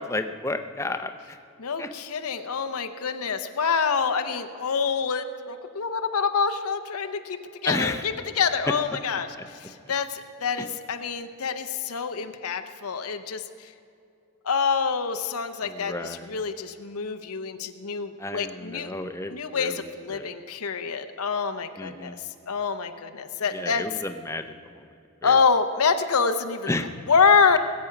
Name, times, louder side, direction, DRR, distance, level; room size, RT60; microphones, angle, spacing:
voice 1, 0.0-1.4 1.8-1.9 7.6-8.0 8.7-8.8 15.6-16.4 18.2-20.3 21.8-22.2 23.5-24.8 25.2-25.4 26.7-26.9, left 2 dB, 15° left, 8 dB, 0.6 m, -32 dB
voice 2, 1.6-13.7 14.4-18.9 19.3-22.2 22.5-23.8 25.2-26.7 27.1-27.6, left 5 dB, 85° left, 8 dB, 0.7 m, -26 dB
20.0 x 8.4 x 5.8 m, 2.6 s
head